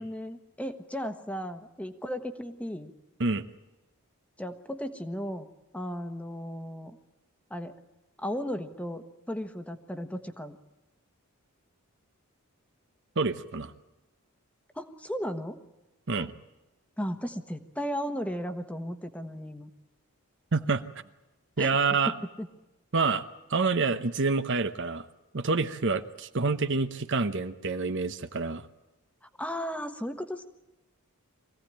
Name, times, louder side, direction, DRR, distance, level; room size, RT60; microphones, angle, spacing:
voice 1, 0.0-2.9 4.4-5.5 5.7-7.0 7.5-7.7 8.2-10.6 14.7-15.6 17.0-19.7 21.6-21.7 22.1-22.5 29.4-30.5, equal, 5° left, 7 dB, 1.3 m, -35 dB
voice 2, 13.2-13.7 16.1-16.3 20.5-20.8 21.6-22.1 22.9-23.2 23.5-25.1 25.3-28.6, right 4 dB, 55° right, 9 dB, 0.9 m, -27 dB
24.5 x 16.5 x 8.9 m, 1.0 s
head